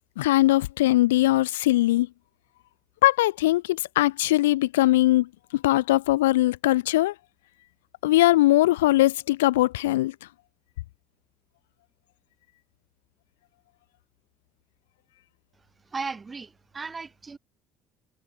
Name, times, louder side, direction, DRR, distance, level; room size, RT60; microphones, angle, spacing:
voice 1, 0.2-2.1 3.0-7.1 8.0-10.1, left 17 dB, 85° left, 0.3 m, -21 dB
voice 2, 15.9-17.4, right 4 dB, 30° right, 4.1 m, -36 dB
hypercardioid pair, 60°, 0 cm